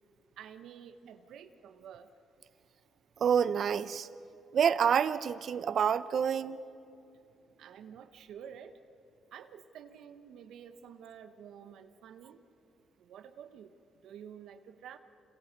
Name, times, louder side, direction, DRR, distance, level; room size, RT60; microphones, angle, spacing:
voice 1, 0.4-2.1 7.6-8.8 9.3-12.4 13.0-13.7 14.0-15.0, right 8 dB, 80° right, 9 dB, 1.1 m, -50 dB
voice 2, 3.2-4.1 4.5-6.6, right 7 dB, 60° right, 15 dB, 0.7 m, -27 dB
29.5 x 26.5 x 5.3 m, 2.7 s
cardioid pair, 90°, 0 cm